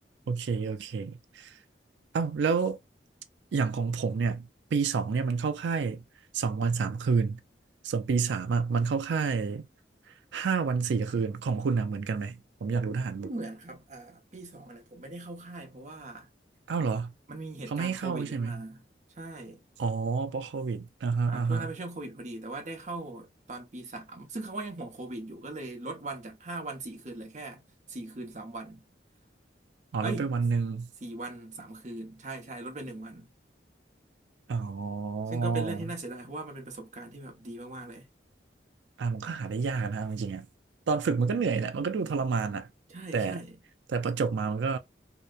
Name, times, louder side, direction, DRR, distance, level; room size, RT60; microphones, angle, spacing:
voice 1, 0.3-1.5 2.1-2.8 3.5-6.0 6.3-7.4 7.8-9.6 10.3-13.3 16.7-17.1 17.7-18.6 19.8-21.7 29.9-30.9 34.5-35.8 39.0-40.5 40.9-42.7 43.1-43.4 43.9-44.8, right 5 dB, 80° right, 0.4 m, -29 dB
voice 2, 12.9-16.3 17.3-18.8 19.1-19.6 21.2-27.6 27.9-28.8 30.0-30.3 31.0-33.3 35.3-38.1 42.9-43.6, right 2 dB, 40° right, 0.8 m, -40 dB
2.8 x 2.0 x 2.3 m
head